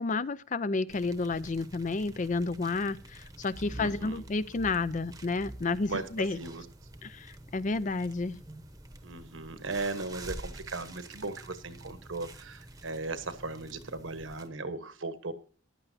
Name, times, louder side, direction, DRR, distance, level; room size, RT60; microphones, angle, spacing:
voice 1, 0.0-6.4 7.0-8.4, left 3 dB, 40° left, 15 dB, 0.4 m, -31 dB
sound 1, 0.9-14.5, right 1 dB, 15° right, 0.9 m, -47 dB
voice 2, 3.8-4.2 5.9-6.6 9.0-15.3, right 3 dB, 70° right, 11 dB, 1.1 m, -37 dB
14.5 x 11.0 x 2.7 m, 0.43 s
head